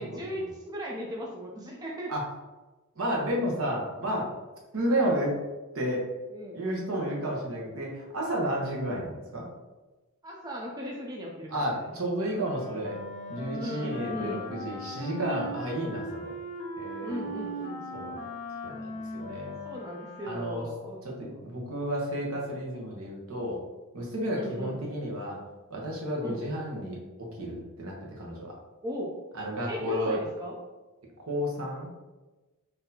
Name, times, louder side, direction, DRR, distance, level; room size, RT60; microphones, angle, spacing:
voice 1, 0.0-2.1 5.0-5.1 6.3-6.6 10.2-11.7 13.5-14.5 17.0-17.8 19.6-21.4 24.3-24.8 26.2-26.4 28.8-29.2 29.7-30.6, equal, 15° right, -2 dB, 0.4 m, -37 dB
voice 2, 3.0-4.3 4.7-5.3 5.7-6.1 6.5-9.4 11.5-13.0 13.3-16.3 16.8-17.2 17.9-18.2 18.6-19.5 20.2-20.7 21.0-23.6 23.9-25.4 25.7-28.5 29.3-30.2 31.2-31.9, equal, 70° right, -2 dB, 0.9 m, -31 dB
Wind instrument woodwind instrument, 12.3-20.8, left 1 dB, 35° left, 0.5 m, -39 dB
4.0 x 2.7 x 2.7 m, 1.1 s
head